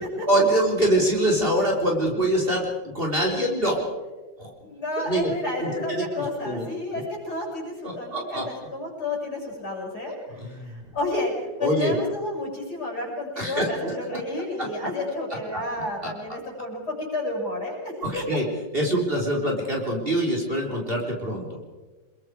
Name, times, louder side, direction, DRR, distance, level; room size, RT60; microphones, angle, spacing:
voice 1, 0.0-2.7 2.9-3.9 4.4-4.5 5.0-5.3 5.6-6.6 6.9-7.0 7.8-8.4 10.4-10.7 11.6-11.9 13.4-13.9 16.0-16.1 18.0-18.4 18.7-21.4, right 1 dB, 25° right, -1 dB, 4.2 m, -24 dB
voice 2, 4.6-18.2, left 2 dB, 50° left, -2 dB, 7.3 m, -31 dB
28.5 x 22.0 x 4.8 m, 1.2 s
omnidirectional pair, 2.2 m